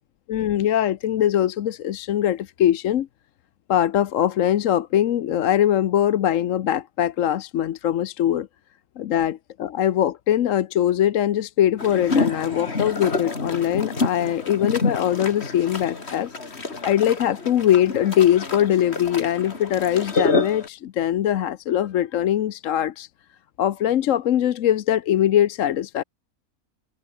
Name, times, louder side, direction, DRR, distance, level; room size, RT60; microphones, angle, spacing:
voice 1, 0.3-3.1 3.7-8.5 9.0-23.1 23.6-26.0, left 11 dB, 70° left, 1.1 m, -22 dB
sound 1, 11.8-20.7, left 3 dB, 50° left, 2.9 m, -28 dB
omnidirectional pair, 1.5 m